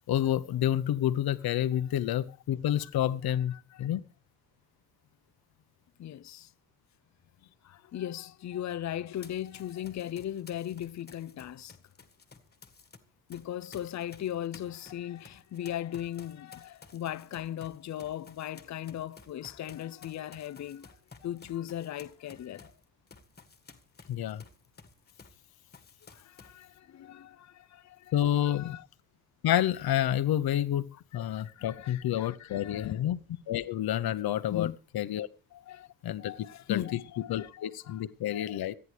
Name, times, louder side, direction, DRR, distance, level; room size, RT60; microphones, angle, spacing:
voice 1, 0.1-4.0 24.1-24.4 28.1-28.8 29.4-30.9 31.1-33.2 33.5-34.7 34.9-35.3 36.0-37.0 37.3-38.7, left 11 dB, 85° left, 1.0 m, -29 dB
voice 2, 6.0-6.5 7.6-11.7 13.3-20.9 21.2-22.7 26.1-28.1 28.4-28.8 31.3-33.0 34.5-34.8 35.5-35.9 36.2-38.0 38.3-38.6, left 11 dB, 50° left, 0.6 m, -38 dB
Run, 9.2-13.0 13.3-25.4 25.7-26.6, left 4 dB, 25° left, 1.8 m, -54 dB
26.5 x 9.9 x 3.4 m
wide cardioid pair, 145°, 36 cm